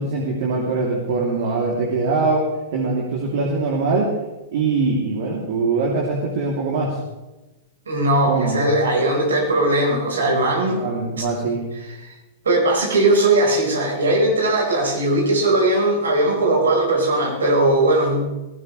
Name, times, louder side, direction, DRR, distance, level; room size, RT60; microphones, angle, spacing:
voice 1, 0.0-2.5 2.7-4.1 4.5-7.0 8.3-8.6 10.7-11.6, right 3 dB, 60° right, -2 dB, 3.1 m, -22 dB
voice 2, 7.9-10.8 11.2-11.3 11.8-12.1 12.4-18.2, right 2 dB, 75° right, 0 dB, 4.8 m, -19 dB
18.5 x 16.5 x 3.3 m, 1.1 s
figure-of-eight pair, 100°, 0 cm